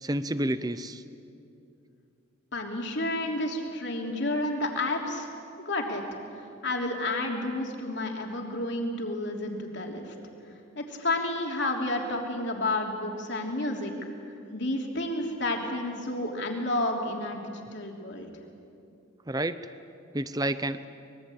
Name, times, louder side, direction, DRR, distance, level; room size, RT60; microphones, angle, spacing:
voice 1, 0.0-1.0 19.3-19.6 20.1-20.9, right 1 dB, 20° right, 13 dB, 0.7 m, -29 dB
voice 2, 2.5-5.3 5.6-6.0 6.3-10.1 10.4-13.9 14.5-18.3, left 2 dB, 55° left, 1 dB, 3.1 m, -31 dB
24.5 x 21.5 x 8.6 m, 2.6 s
head